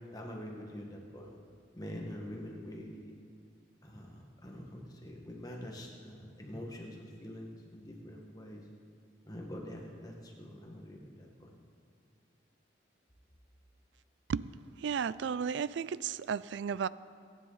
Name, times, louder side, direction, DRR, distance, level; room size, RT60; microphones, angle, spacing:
voice 1, 0.1-1.4 1.7-3.1 3.8-8.6 9.2-11.6, equal, 20° left, 0 dB, 1.5 m, -45 dB
voice 2, 14.8-16.9, right 6 dB, 75° right, 18 dB, 0.3 m, -33 dB
22.5 x 10.0 x 4.0 m, 2.3 s
head